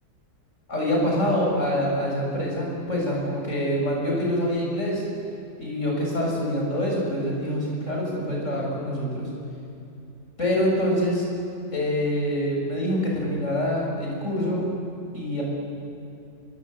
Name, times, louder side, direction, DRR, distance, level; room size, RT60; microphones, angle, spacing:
voice 1, 0.7-5.0 5.6-9.3 10.4-11.3 11.7-14.6 15.1-15.4, equal, 45° left, -3 dB, 7.0 m, -25 dB
25.5 x 22.5 x 8.1 m, 2.5 s
omnidirectional pair, 1.8 m